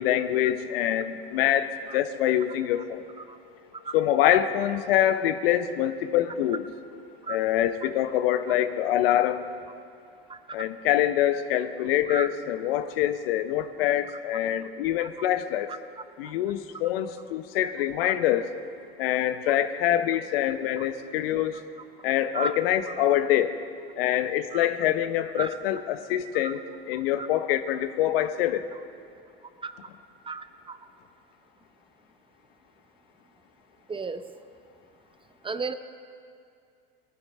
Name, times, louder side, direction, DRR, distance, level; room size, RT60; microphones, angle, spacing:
voice 1, 0.0-3.0 3.9-6.6 7.3-9.5 10.5-15.7 16.2-18.5 19.0-21.6 22.0-23.6 24.0-26.6 26.9-28.7, left 12 dB, 70° left, 11 dB, 0.9 m, -25 dB
voice 2, 15.0-15.3 15.7-15.8 16.2-16.3 18.0-18.1 19.5-19.6 20.8-20.9 22.3-22.6 22.9-23.0 24.5-24.7 25.4-25.5 26.3-26.5 26.9-27.3 29.6-29.8 30.2-30.8 33.9-34.2 35.4-35.7, right 4 dB, 15° right, 10 dB, 0.7 m, -35 dB
19.5 x 13.5 x 4.3 m, 2.4 s
hypercardioid pair, 90°, 30 cm